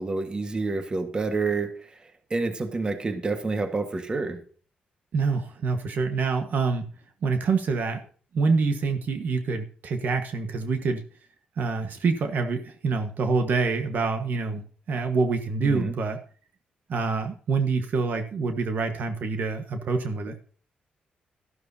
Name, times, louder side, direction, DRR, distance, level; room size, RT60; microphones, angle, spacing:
voice 1, 0.0-4.4 15.6-15.9, right 3 dB, 30° right, 7 dB, 1.5 m, -28 dB
voice 2, 5.1-6.9 7.2-8.1 8.3-11.0 11.6-16.2 16.9-20.3, right 4 dB, 65° right, 6 dB, 1.3 m, -26 dB
12.5 x 12.5 x 2.7 m, 0.43 s
cardioid pair, 105°, 3 cm